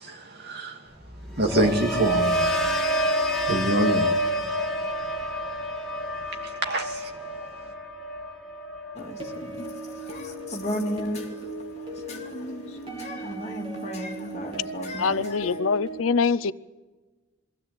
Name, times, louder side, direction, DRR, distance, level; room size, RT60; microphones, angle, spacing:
voice 1, 0.0-0.8 1.4-2.5 3.5-4.1 6.6-7.1, right 1 dB, 55° right, 2 dB, 2.6 m, -25 dB
sound 1, 1.0-11.1 11.5-11.9, equal, ahead, 1.9 m, -29 dB
voice 2, 8.9-15.6, equal, 35° left, 1 dB, 2.6 m, -35 dB
sound 2, 9.2-16.0, right 2 dB, 25° right, 3.5 m, -37 dB
voice 3, 15.0-16.5, left 5 dB, 85° left, 17 dB, 0.6 m, -24 dB
22.5 x 16.0 x 8.5 m, 1.2 s
head